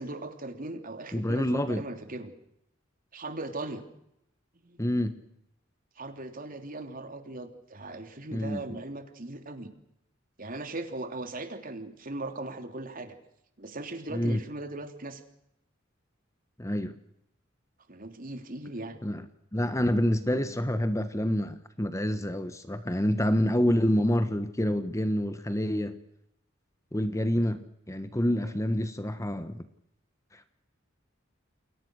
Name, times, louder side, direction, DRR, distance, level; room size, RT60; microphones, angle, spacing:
voice 1, 0.0-2.3 3.1-3.8 4.6-4.8 6.0-9.7 10.4-13.2 13.6-15.2 17.9-19.0 28.4-28.5, right 2 dB, 45° right, 7 dB, 3.2 m, -39 dB
voice 2, 1.1-1.8 4.8-5.2 8.3-8.8 14.1-14.4 16.6-17.0 19.0-19.2 19.5-26.0 26.9-27.6 27.9-29.7 30.3-30.5, equal, 15° left, 11 dB, 1.3 m, -27 dB
29.0 x 22.5 x 6.4 m, 0.80 s
head